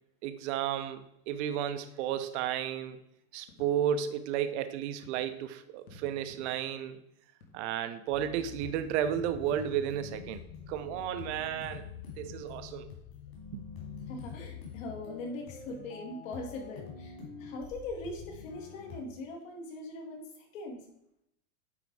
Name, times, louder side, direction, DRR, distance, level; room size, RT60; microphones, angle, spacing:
voice 1, 0.2-3.0 3.3-7.0 7.5-10.4 10.7-11.9 12.2-12.9 13.5-13.6, right 10 dB, 50° right, 0.8 m, -33 dB
sound 1, 3.5-4.0 5.0-5.3 5.8-6.9 7.4-7.9 8.8-9.1 9.5-10.2, left 2 dB, 75° left, 2.2 m, -55 dB
sound 2, 8.1-19.0, left 6 dB, 40° left, 2.8 m, -46 dB
voice 2, 14.1-20.8, left 2 dB, 60° left, 2.4 m, -41 dB
9.6 x 4.1 x 4.7 m
supercardioid pair, 165°, 43 cm